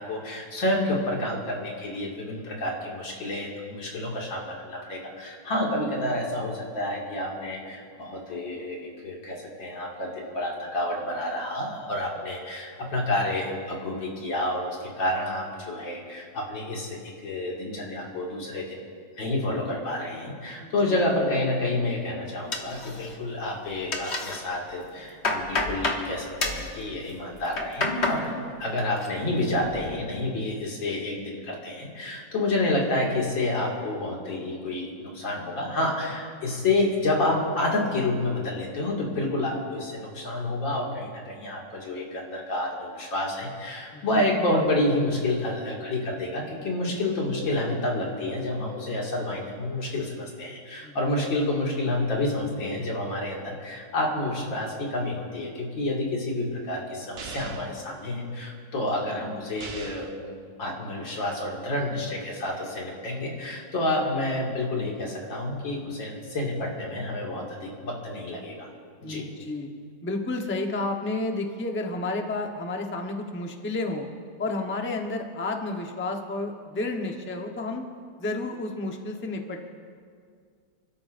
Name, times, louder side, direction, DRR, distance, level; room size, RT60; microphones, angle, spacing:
voice 1, 0.0-18.9 19.2-28.3 28.6-68.7 69.0-69.3, left 1 dB, 85° left, -2 dB, 3.1 m, -29 dB
voice 2, 20.6-21.0 43.9-44.2 50.8-51.0 69.0-69.7 70.0-74.1 74.4-77.8 78.2-79.7, left 2 dB, 10° left, 2 dB, 0.7 m, -31 dB
sound 1, 22.5-23.4 23.6-24.4 24.8-26.0 26.4-26.7 27.3-28.2 28.6-29.1 29.5-29.9, left 2 dB, 40° left, 1.5 m, -29 dB
sound 2, 57.2-57.8 59.6-60.2, right 5 dB, 50° right, 0.7 m, -40 dB
30.0 x 13.0 x 2.6 m, 2.1 s
omnidirectional pair, 2.0 m